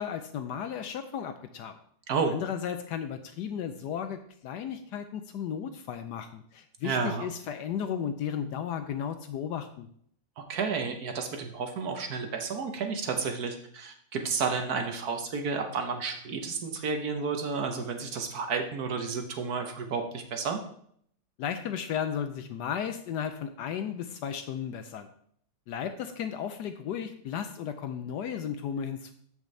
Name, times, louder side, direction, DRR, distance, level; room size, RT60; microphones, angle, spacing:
voice 1, 0.0-1.7 2.3-9.9 21.4-25.1 25.7-29.1, left 8 dB, 70° left, 9 dB, 1.1 m, -34 dB
voice 2, 6.8-7.3 10.4-20.6, right 5 dB, 60° right, 5 dB, 1.2 m, -31 dB
13.5 x 5.3 x 3.2 m, 0.65 s
omnidirectional pair, 2.1 m